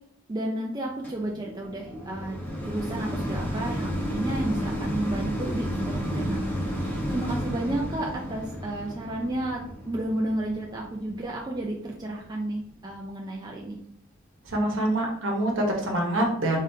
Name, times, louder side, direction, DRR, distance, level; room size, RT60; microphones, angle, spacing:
voice 1, 0.3-6.5 6.8-13.8, right 1 dB, 20° right, -2 dB, 0.4 m, -32 dB
sound 1, 1.0-12.3 12.9-13.0, equal, 10° left, 1.0 m, -32 dB
voice 2, 14.5-16.6, right 1 dB, 65° right, 0 dB, 1.0 m, -25 dB
3.7 x 3.5 x 2.7 m, 0.67 s
head